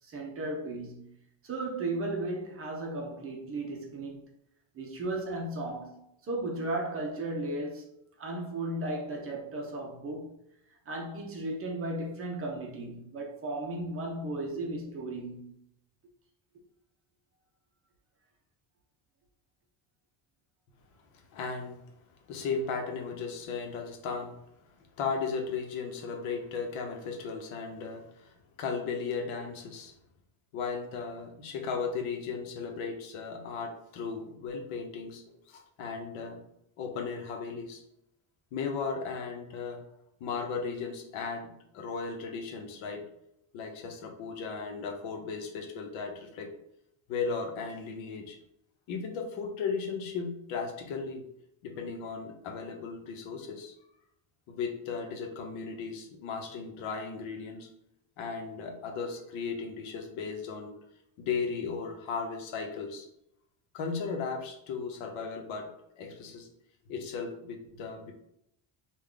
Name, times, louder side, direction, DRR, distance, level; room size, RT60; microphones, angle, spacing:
voice 1, 0.0-1.2 1.4-4.3 4.7-10.3 10.9-15.6, right 2 dB, 30° right, 0.5 m, -35 dB
voice 2, 21.3-21.8 22.3-24.3 25.0-29.9 30.5-36.4 36.8-37.8 38.5-39.8 40.2-43.0 43.5-46.5 47.1-48.4 48.9-51.2 51.6-53.7 54.5-57.7 58.2-60.7 61.2-63.1 63.7-65.7 66.0-66.5 66.9-68.1, left 5 dB, 80° left, 0.9 m, -36 dB
3.4 x 2.4 x 3.7 m
cardioid pair, 175°, 48 cm